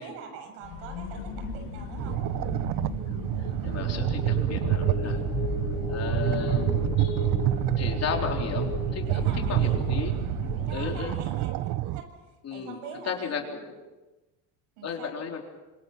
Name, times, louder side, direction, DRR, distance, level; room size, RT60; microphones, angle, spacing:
voice 1, 0.0-2.2 5.0-5.3 9.1-9.9 10.7-12.1 12.5-13.4 14.8-15.1, right 5 dB, 80° right, 4 dB, 7.5 m, -43 dB
sound 1, 0.6-11.1, left 4 dB, 70° left, 7.4 m, -34 dB
sound 2, 2.0-12.0, right 16 dB, 55° right, 1.1 m, -28 dB
voice 2, 3.6-5.2 5.9-7.3 7.8-10.2 10.7-11.2 12.4-12.8 13.0-13.8 14.8-15.4, left 6 dB, 35° left, 2 dB, 4.0 m, -34 dB
26.0 x 21.5 x 5.9 m, 1.1 s
supercardioid pair, 115°, 41 cm